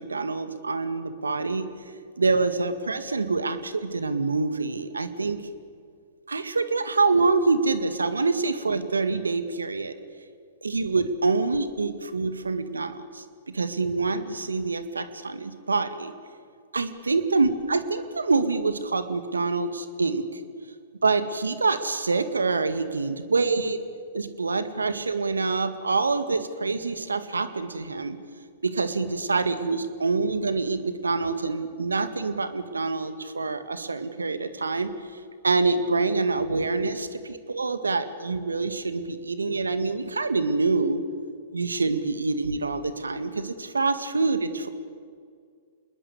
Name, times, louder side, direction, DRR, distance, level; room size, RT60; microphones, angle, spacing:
voice 1, 0.0-1.6 2.2-5.4 6.3-10.0 10.6-16.1 16.7-20.4 21.0-23.8 24.1-28.2 28.6-34.9 35.4-41.0 41.5-44.7, right 3 dB, 85° right, 10 dB, 2.0 m, -26 dB
27.5 x 21.0 x 8.3 m, 2.1 s
figure-of-eight pair, 110°, 0 cm